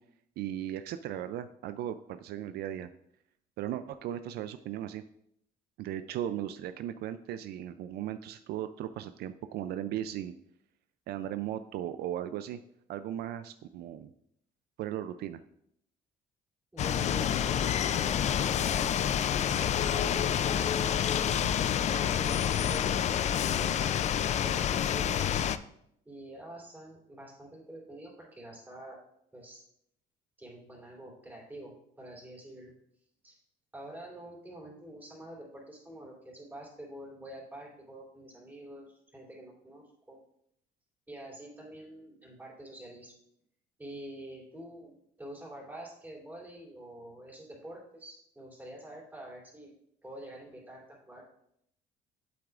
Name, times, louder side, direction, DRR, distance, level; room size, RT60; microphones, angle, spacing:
voice 1, 0.4-2.9 3.6-5.0 5.8-10.3 11.1-12.6 12.9-14.1 14.8-15.4, right 11 dB, 70° right, 10 dB, 0.4 m, -37 dB
voice 2, 16.7-21.0 21.8-25.3 26.0-29.0 29.3-29.6 30.4-32.7 33.2-33.4 33.7-40.2 41.1-43.1 43.8-44.9 45.2-49.7 50.0-51.2, right 1 dB, 10° right, -3 dB, 3.0 m, -47 dB
sound 1, 16.8-25.6, left 9 dB, 45° left, 0.4 m, -28 dB
8.5 x 7.9 x 2.4 m, 0.72 s
cardioid pair, 110°, 17 cm